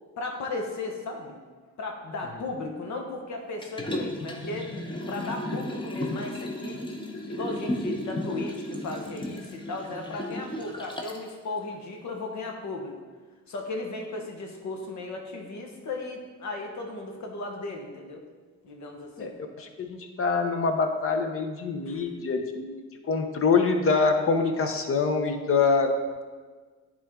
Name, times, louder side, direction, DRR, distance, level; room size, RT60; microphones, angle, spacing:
voice 1, 0.2-1.4 1.8-4.7 5.1-6.8 7.3-12.9 13.5-18.2 18.6-19.3 21.9-22.0, left 2 dB, 70° left, 2 dB, 1.2 m, -36 dB
Liquid, 3.6-11.3 11.7-11.8, left 1 dB, 15° left, 0.9 m, -34 dB
voice 2, 19.2-22.7 23.1-25.9, left 4 dB, 45° left, 5 dB, 0.9 m, -25 dB
9.9 x 3.7 x 3.7 m, 1.4 s
cardioid pair, 90°, 30 cm